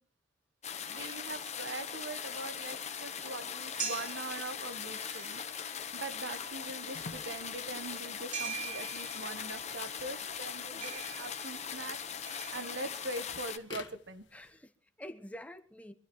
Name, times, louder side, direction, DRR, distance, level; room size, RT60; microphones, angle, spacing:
sound 1, 0.6-13.6, left 7 dB, 35° left, 1.1 m, -40 dB
voice 1, 0.8-5.4 5.9-12.0 12.3-14.2, right 2 dB, 70° right, 1.2 m, -42 dB
sound 2, 3.3-13.4, right 6 dB, 45° right, 3.0 m, -45 dB
sound 3, 6.9-14.5, left 4 dB, 75° left, 1.7 m, -53 dB
voice 2, 14.3-15.9, equal, 10° left, 1.1 m, -48 dB
25.0 x 13.0 x 3.1 m
head